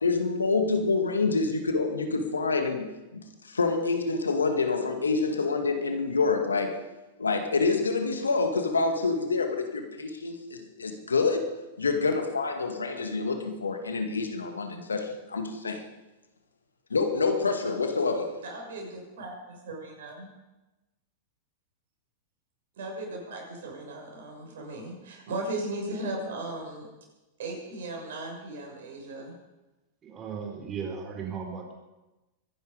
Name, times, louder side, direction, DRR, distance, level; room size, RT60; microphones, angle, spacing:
voice 1, 0.0-6.8 7.2-15.9 16.9-18.4, left 4 dB, 90° left, 5 dB, 2.1 m, -27 dB
voice 2, 18.4-20.3 22.8-26.9 27.4-29.3, right 2 dB, 70° right, 1 dB, 6.6 m, -37 dB
voice 3, 30.0-31.7, right 6 dB, 30° right, 2 dB, 4.4 m, -36 dB
23.5 x 11.0 x 5.2 m, 1.1 s
hypercardioid pair, 100°, 0 cm